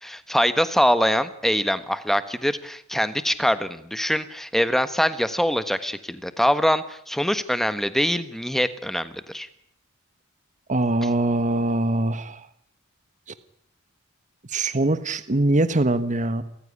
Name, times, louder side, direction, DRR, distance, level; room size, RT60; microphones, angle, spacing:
voice 1, 0.0-9.5, equal, ahead, 12 dB, 1.4 m, -23 dB
voice 2, 10.7-12.5 14.5-16.4, right 2 dB, 35° right, 13 dB, 1.3 m, -22 dB
29.0 x 15.0 x 10.0 m, 0.70 s
head